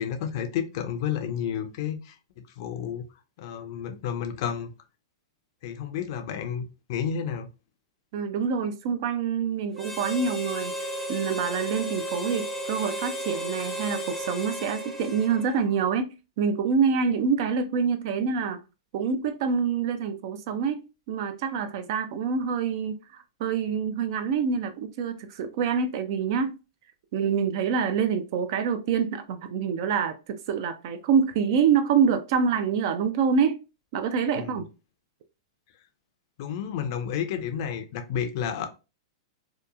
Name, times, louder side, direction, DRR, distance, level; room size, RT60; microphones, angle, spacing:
voice 1, 0.0-3.0 3.4-4.7 5.6-7.5 34.4-34.6 36.4-38.7, left 8 dB, 55° left, 0.5 m, -31 dB
voice 2, 8.1-10.7 11.1-18.6 18.9-20.8 21.1-26.6 27.1-33.6 33.9-34.7, right 6 dB, 55° right, 0.4 m, -26 dB
Harmonica, 9.7-15.7, equal, 5° left, 0.6 m, -34 dB
2.8 x 2.2 x 2.4 m
hypercardioid pair, 135°, 3 cm